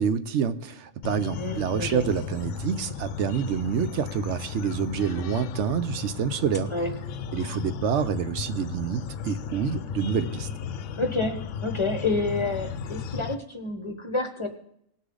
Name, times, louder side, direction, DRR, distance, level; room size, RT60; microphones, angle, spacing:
voice 1, 0.0-6.7 7.3-10.5, right 7 dB, 65° right, 12 dB, 0.9 m, -27 dB
sound 1, 1.0-13.3, left 7 dB, 75° left, 0.9 m, -35 dB
voice 2, 1.4-2.0 6.7-6.9 11.0-14.5, left 2 dB, 25° left, 5 dB, 1.0 m, -29 dB
19.0 x 6.5 x 3.8 m, 0.72 s
omnidirectional pair, 1.4 m